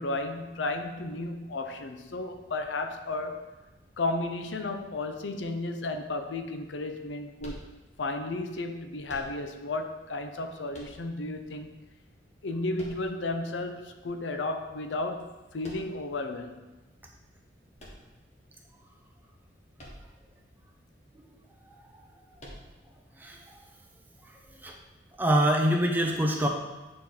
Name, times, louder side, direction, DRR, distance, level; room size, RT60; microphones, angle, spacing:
voice 1, 0.0-3.5 4.0-7.7 8.0-11.7 12.4-16.7, left 2 dB, 90° left, 0.7 m, -33 dB
sound 1, 7.4-8.2 9.0-9.7 10.7-11.4 12.7-13.5 15.6-16.2 17.7-18.6 19.7-20.3 20.6-20.7 22.4-23.0, equal, 40° left, 1.4 m, -47 dB
voice 2, 25.2-26.5, equal, 10° right, 0.8 m, -24 dB
8.6 x 4.4 x 4.1 m
head